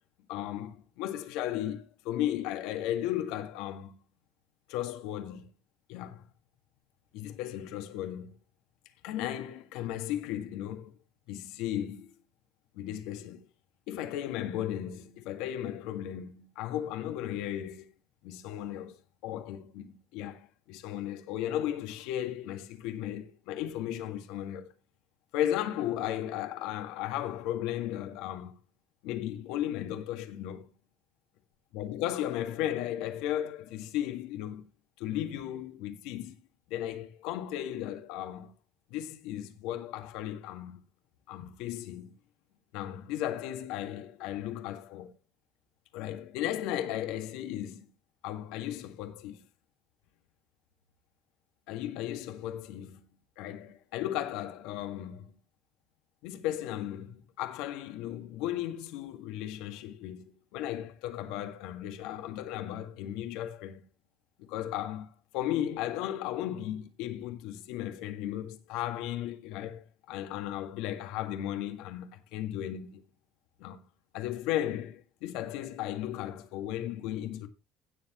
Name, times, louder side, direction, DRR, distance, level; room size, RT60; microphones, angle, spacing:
voice 1, 0.3-4.0 4.7-5.5 5.9-6.2 7.1-8.3 9.0-10.9 11.3-12.1 12.7-13.5 13.9-17.9 18.2-24.7 25.3-28.6 29.0-30.7 31.7-34.6 35.0-36.4 36.7-38.5 38.9-40.8 41.3-42.1 42.7-45.1 45.9-47.9 48.2-49.4 51.7-53.0 53.4-55.2 56.2-63.8 64.4-65.1 65.3-73.0 73.6-73.8 74.1-77.5, left 12 dB, 75° left, 1.7 m, -35 dB
17.5 x 7.3 x 3.0 m
hypercardioid pair, 65°, 0 cm